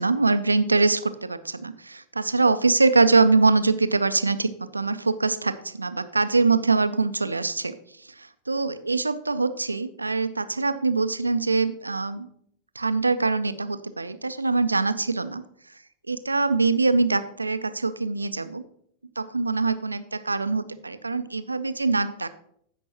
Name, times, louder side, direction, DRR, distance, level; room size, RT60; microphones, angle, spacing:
voice 1, 0.0-7.7 8.5-12.3 12.8-15.4 16.1-18.6 19.2-22.3, right 3 dB, 80° right, 12 dB, 0.5 m, -23 dB
15.5 x 5.3 x 2.9 m, 0.68 s
figure-of-eight pair, 90°, 0 cm